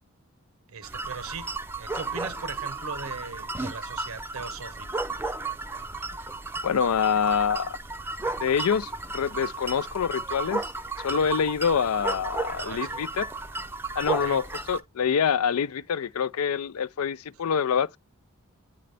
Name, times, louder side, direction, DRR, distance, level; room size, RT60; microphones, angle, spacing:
voice 1, 0.7-5.0 12.5-13.0 14.2-14.4, right 5 dB, 75° right, 0.8 m, -39 dB
sound 1, 0.8-14.8, right 3 dB, 10° right, 0.4 m, -34 dB
voice 2, 6.6-7.8 8.4-10.6 11.0-13.3 14.0-18.0, left 7 dB, 85° left, 0.4 m, -26 dB
8.7 x 3.8 x 3.3 m
head